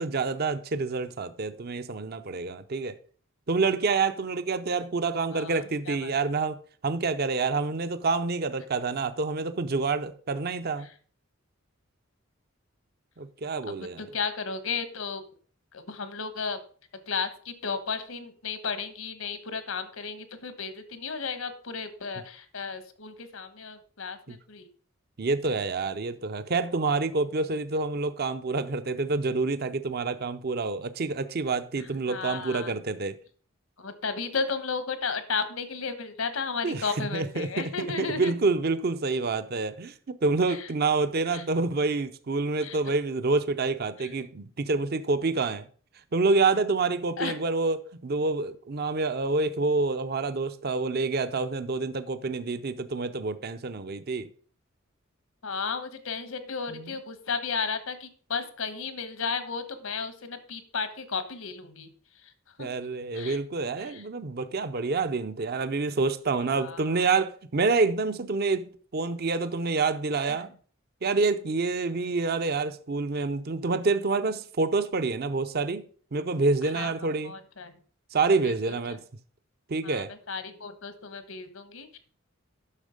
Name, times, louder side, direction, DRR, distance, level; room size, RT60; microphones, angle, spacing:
voice 1, 0.0-3.0 3.5-10.9 13.2-14.1 24.3-24.4 25.2-33.1 36.6-45.7 46.1-54.3 56.7-57.0 62.6-70.5 71.0-75.8 76.1-77.3 78.1-79.0 79.7-80.1, right 3 dB, 50° right, 0.6 m, -27 dB
voice 2, 5.3-6.1 14.1-15.2 15.7-16.6 17.1-24.7 32.1-32.7 33.8-38.3 41.3-41.4 42.6-42.8 44.0-44.1 47.2-47.3 55.4-61.9 62.6-62.7 63.1-63.4 63.9-64.0 66.6-67.0 76.7-76.9 77.2-77.7 78.4-78.7 79.8-82.0, left 5 dB, 80° left, 1.3 m, -34 dB
9.9 x 6.3 x 5.2 m
head